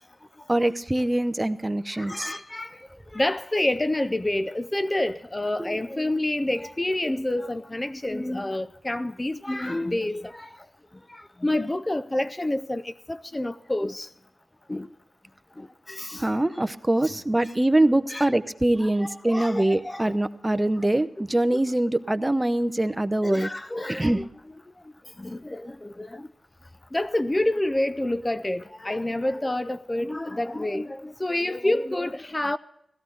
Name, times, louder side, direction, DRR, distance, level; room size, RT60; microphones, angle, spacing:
voice 1, 0.5-2.3 5.6-5.7 16.2-23.5 24.0-24.2, right 1 dB, 15° right, 0.7 m, -23 dB
voice 2, 2.0-2.7 3.1-10.5 11.4-14.1 14.7-14.9 15.6-16.2 18.1-18.3 18.8-20.2 23.2-24.2 25.2-26.2 26.9-32.6, left 1 dB, 20° left, 0.4 m, -28 dB
17.0 x 14.5 x 3.9 m
cardioid pair, 65°, 0 cm